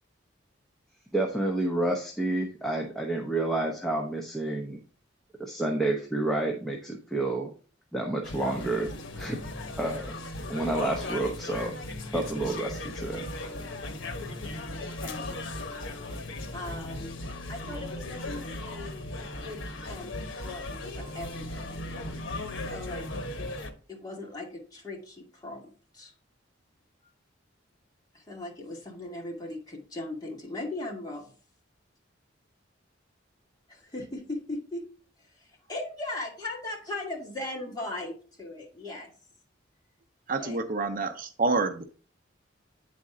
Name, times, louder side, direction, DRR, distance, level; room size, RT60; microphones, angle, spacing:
voice 1, 1.1-4.8 5.4-7.5 7.9-9.4 9.8-10.2 10.5-13.3, right 2 dB, ahead, 0.9 m, -29 dB
sound 1, 8.2-23.7, left 2 dB, 80° left, 1.1 m, -37 dB
voice 2, 14.3-15.3 16.5-17.1 17.5-20.1 20.4-20.6 21.0-22.2 22.5-23.5 23.9-26.1 28.1-31.2 33.7-34.8 35.2-39.1 40.4-40.6, left 2 dB, 20° left, 2.2 m, -39 dB
voice 3, 40.3-41.8, right 3 dB, 45° right, 0.6 m, -28 dB
9.5 x 4.2 x 3.7 m
head